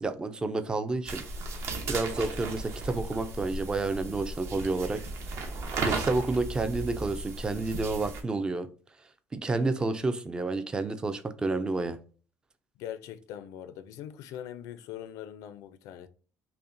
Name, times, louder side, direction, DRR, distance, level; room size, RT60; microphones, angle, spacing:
voice 1, 0.0-1.2 1.9-5.0 5.8-8.7 9.3-12.0, right 3 dB, 15° right, 0.3 m, -30 dB
sound 1, 1.1-8.2, right 3 dB, 55° right, 0.8 m, -35 dB
voice 2, 12.8-16.1, left 10 dB, 80° left, 0.4 m, -42 dB
5.5 x 2.1 x 2.6 m
cardioid pair, 140°, 6 cm